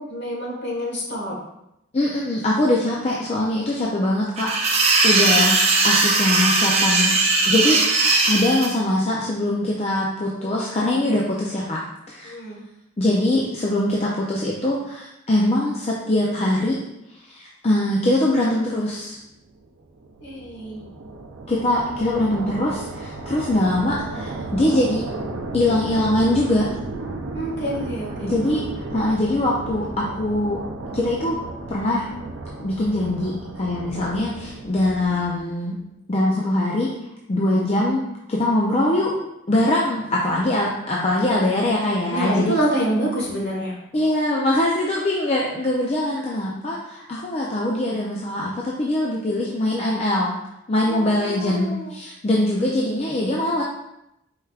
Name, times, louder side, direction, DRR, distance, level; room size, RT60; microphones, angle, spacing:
voice 1, 0.0-1.4 12.2-12.6 20.2-20.9 27.3-28.3 42.1-43.8 50.9-51.9, right 1 dB, 60° left, -4 dB, 1.5 m, -27 dB
voice 2, 1.9-4.8 5.0-5.6 5.8-7.2 7.5-11.8 12.1-12.3 13.0-16.8 17.2-19.2 21.5-25.1 25.5-26.7 28.2-30.6 30.9-31.4 31.7-32.1 32.6-35.8 36.1-36.9 37.3-39.1 39.5-42.5 43.9-50.3 50.7-53.6, left 1 dB, 30° left, -3 dB, 0.5 m, -22 dB
sound 1, 4.4-8.7, right 3 dB, 30° right, 0.6 m, -19 dB
sound 2, 19.3-35.6, right 2 dB, 90° right, 0.5 m, -34 dB
4.6 x 4.4 x 2.4 m, 0.84 s
head